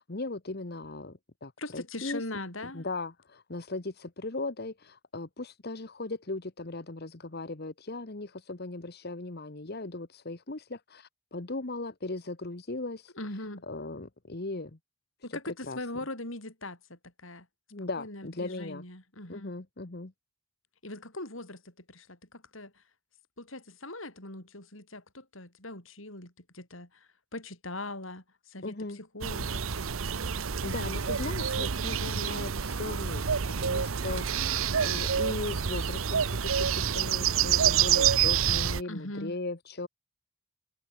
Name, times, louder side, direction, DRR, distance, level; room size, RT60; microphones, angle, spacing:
voice 1, 0.0-2.2 2.6-14.8 15.3-15.8 17.7-18.8 19.3-20.1 28.6-29.0 30.6-39.9, left 2 dB, 50° left, 1.2 m, -38 dB
voice 2, 1.6-2.9 13.2-13.6 15.2-17.5 18.0-19.6 20.8-22.7 23.4-29.6 38.9-39.3, left 2 dB, 70° left, 7.2 m, -41 dB
sound 1, 29.2-38.8, right 7 dB, 75° right, 0.9 m, -28 dB
head